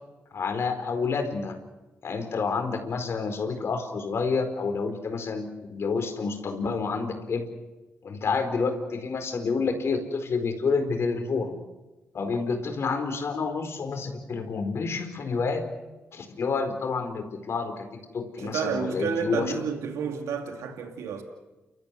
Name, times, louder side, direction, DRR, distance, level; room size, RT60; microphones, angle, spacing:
voice 1, 0.3-1.6 2.0-7.5 8.0-11.5 12.1-15.7 16.1-17.9 18.1-19.4, left 4 dB, 60° left, 4.5 m, -29 dB
voice 2, 18.4-21.2, right 6 dB, 85° right, 2.5 m, -30 dB
29.5 x 14.0 x 9.8 m
supercardioid pair, 55°, 5 cm